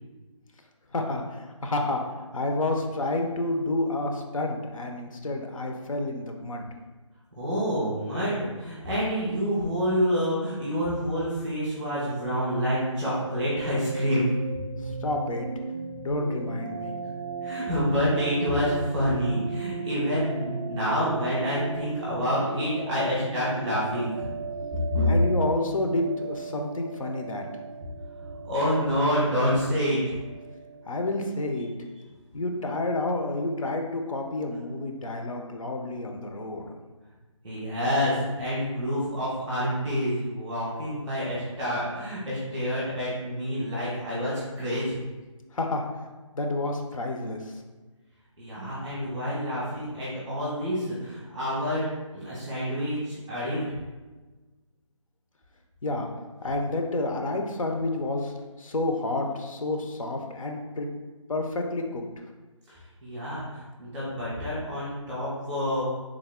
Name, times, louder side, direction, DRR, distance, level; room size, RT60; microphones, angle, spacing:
voice 1, 0.9-6.7 14.8-15.5 16.0-16.9 25.1-27.5 30.9-31.7 32.3-36.8 45.5-45.8 46.3-47.6 55.8-56.1 56.4-60.9 61.3-62.0, left 2 dB, 80° left, 3 dB, 0.6 m, -29 dB
voice 2, 7.4-14.3 17.4-24.2 24.9-25.1 28.5-30.0 37.4-45.0 48.4-53.7 62.7-65.8, equal, ahead, -16 dB, 0.4 m, -28 dB
sound 1, 12.2-31.7, right 5 dB, 70° right, 0.4 m, -37 dB
3.4 x 2.0 x 3.5 m, 1.2 s
figure-of-eight pair, 165°, 17 cm